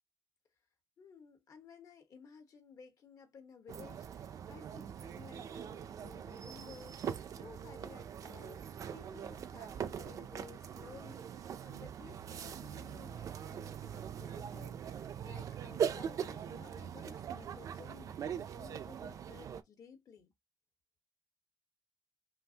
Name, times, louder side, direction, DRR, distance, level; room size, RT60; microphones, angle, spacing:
voice 1, 1.0-20.3, left 6 dB, 60° left, 1.2 m, -56 dB
sound 1, 3.7-19.6, right 8 dB, 60° right, 0.4 m, -42 dB
5.6 x 2.5 x 2.8 m
wide cardioid pair, 165°, 6 cm